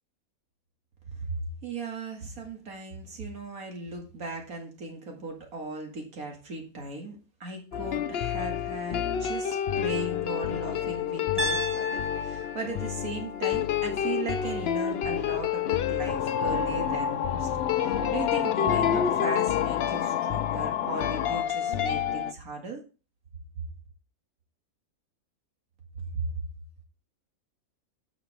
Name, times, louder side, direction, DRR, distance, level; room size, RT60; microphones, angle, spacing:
voice 1, 1.6-17.5 17.7-22.8 26.1-26.4, right 3 dB, 80° right, 2 dB, 2.4 m, -37 dB
sound 1, 7.7-22.3, left 9 dB, 60° left, 0.7 m, -30 dB
Piano, 11.4-15.4, left 1 dB, 15° right, 0.5 m, -36 dB
sound 2, 16.1-21.4, left 8 dB, 80° left, 1.0 m, -29 dB
11.5 x 6.4 x 3.3 m, 0.34 s
omnidirectional pair, 1.5 m